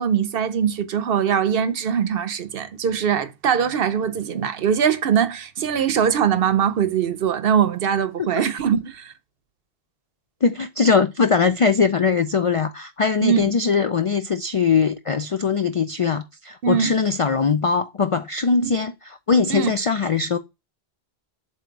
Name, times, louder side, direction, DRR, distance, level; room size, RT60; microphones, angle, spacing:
voice 1, 0.0-9.1 13.2-13.4 16.6-16.9 18.5-18.7 19.5-19.7, right 8 dB, 65° right, 0.9 m, -22 dB
voice 2, 10.4-20.4, left 5 dB, 55° left, 0.3 m, -21 dB
7.7 x 2.8 x 4.6 m
omnidirectional pair, 1.1 m